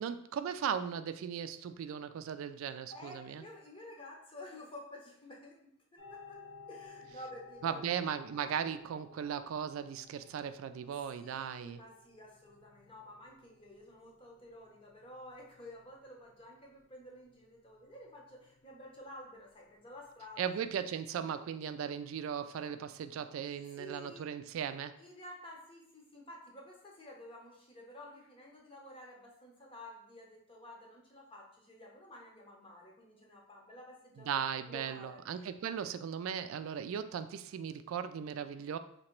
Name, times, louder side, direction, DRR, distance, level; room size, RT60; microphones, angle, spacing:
voice 1, 0.0-3.4 7.6-11.8 20.4-24.9 34.2-38.8, right 8 dB, 80° right, 11 dB, 0.3 m, -37 dB
voice 2, 2.6-5.6 5.9-6.4 6.7-7.8 11.2-20.5 23.7-24.3 25.0-35.9, left 1 dB, 25° left, -1 dB, 0.8 m, -51 dB
sound 1, 6.0-20.7, left 4 dB, 70° left, 0.8 m, -58 dB
3.0 x 2.8 x 4.4 m, 0.70 s
head